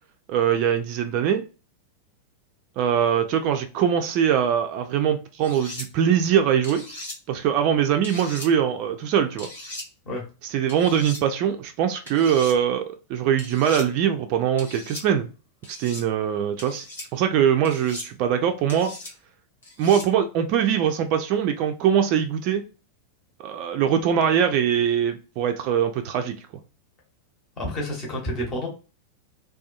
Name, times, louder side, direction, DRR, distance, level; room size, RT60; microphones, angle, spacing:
voice 1, 0.3-1.4 2.8-6.8 7.3-9.5 10.5-15.3 15.7-16.8 17.1-18.9 19.8-22.6 23.4-26.4, right 8 dB, 40° right, 6 dB, 0.3 m, -22 dB
sound 1, 5.4-5.9 6.6-7.2 8.0-8.5 9.4-9.9 10.7-11.2 12.1-12.6 13.4-13.9 14.6-15.0 15.6-16.0 16.6-17.1 17.6-18.1 18.7-19.1 19.6-20.1, left 1 dB, 70° left, 0.8 m, -38 dB
voice 2, 27.6-28.7, left 1 dB, 30° left, -1 dB, 1.0 m, -29 dB
2.5 x 2.3 x 2.4 m, 0.32 s
figure-of-eight pair, 90°, 0 cm